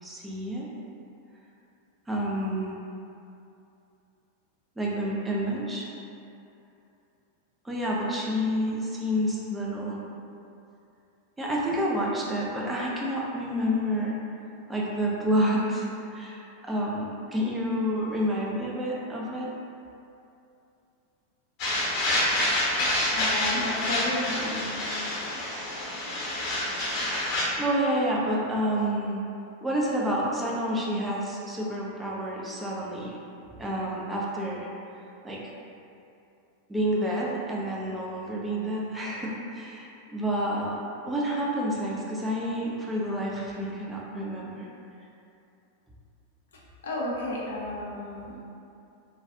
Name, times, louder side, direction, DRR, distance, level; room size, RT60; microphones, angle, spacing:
voice 1, 0.0-0.7 2.1-2.8 4.8-5.9 7.6-10.0 11.4-14.2 14.7-19.5 27.6-29.2 29.6-33.2 33.6-34.7 35.2-35.5 36.7-40.8 41.1-44.7, equal, 10° right, -5 dB, 0.5 m, -29 dB
sound 1, 21.6-27.4, left 1 dB, 40° left, 0.9 m, -27 dB
voice 2, 23.1-24.7 46.8-48.4, left 1 dB, 65° left, -4 dB, 0.6 m, -32 dB
3.3 x 2.3 x 2.7 m, 2.7 s
figure-of-eight pair, 90°, 0 cm